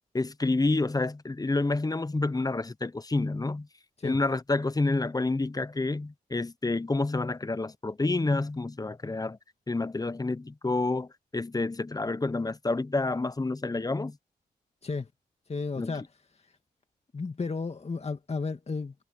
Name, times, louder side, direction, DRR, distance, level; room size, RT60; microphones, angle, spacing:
voice 1, 0.1-3.7 4.0-9.4 9.7-14.2 15.8-16.0, left 2 dB, 20° left, 1.0 m, -29 dB
voice 2, 15.5-16.0 17.1-18.9, left 4 dB, 40° left, 2.2 m, -33 dB
supercardioid pair, 50°, 17 cm